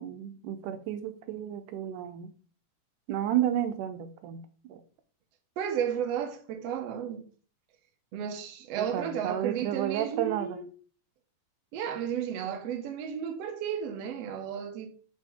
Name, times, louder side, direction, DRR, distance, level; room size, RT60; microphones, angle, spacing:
voice 1, 0.0-2.3 3.1-4.4 4.7-4.8 8.8-10.6, right 11 dB, 85° right, 2.2 m, -32 dB
voice 2, 5.6-7.3 8.1-10.7 11.7-14.9, right 8 dB, 65° right, 1.9 m, -33 dB
6.0 x 4.2 x 4.5 m
omnidirectional pair, 3.5 m